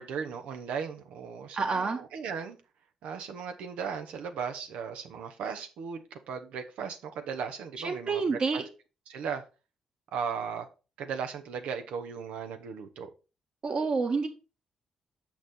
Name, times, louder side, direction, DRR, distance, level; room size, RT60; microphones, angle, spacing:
voice 1, 0.0-2.6 3.0-8.6 9.1-9.4 10.1-10.7 11.0-13.1, right 6 dB, 80° right, 1.0 m, -37 dB
voice 2, 1.5-2.0 7.8-8.6 13.6-14.3, right 4 dB, 55° right, 1.9 m, -28 dB
6.8 x 5.9 x 4.3 m
supercardioid pair, 50°, 2 cm